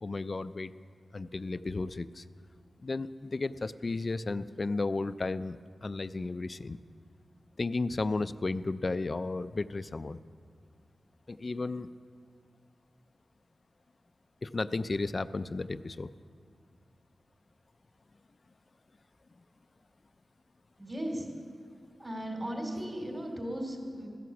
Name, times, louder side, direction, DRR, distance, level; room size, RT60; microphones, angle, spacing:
voice 1, 0.0-0.7 1.1-2.2 2.8-6.8 7.6-10.2 11.3-11.9 14.4-16.1, left 3 dB, 35° left, 14 dB, 0.4 m, -33 dB
voice 2, 20.8-21.3 22.0-24.1, equal, 25° right, 1 dB, 2.9 m, -36 dB
15.0 x 11.0 x 7.1 m, 2.1 s
wide cardioid pair, 120°, 0 cm